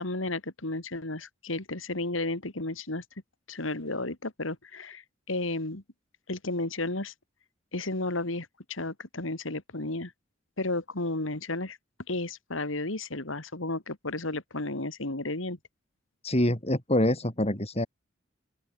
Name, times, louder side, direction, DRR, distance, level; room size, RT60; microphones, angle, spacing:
voice 1, 0.0-3.0 3.5-5.8 6.3-7.1 7.7-10.1 10.6-11.8 12.1-15.6, left 2 dB, 85° left, 2.9 m, -33 dB
voice 2, 16.2-17.9, left 1 dB, 30° left, 5.1 m, -25 dB
open air
head